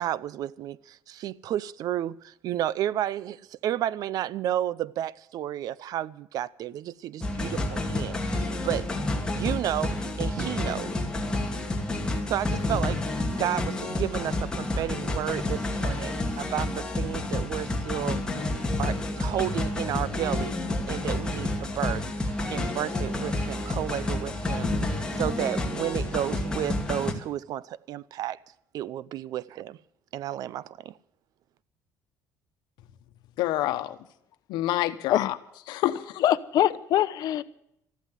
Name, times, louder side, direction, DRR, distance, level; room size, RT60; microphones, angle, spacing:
voice 1, 0.0-8.9 9.3-11.0 12.3-13.0 13.3-18.2 18.8-20.6 20.9-28.4 28.7-29.8 30.1-30.9, right 12 dB, 60° right, 0.6 m, -32 dB
sound 1, 7.2-27.1, left 2 dB, 10° left, 2.4 m, -29 dB
voice 2, 33.4-34.0 34.5-35.4 35.7-36.2, left 15 dB, 80° left, 1.1 m, -27 dB
voice 3, 36.2-37.4, left 12 dB, 60° left, 0.9 m, -23 dB
14.5 x 11.5 x 7.6 m
cardioid pair, 135°, 7 cm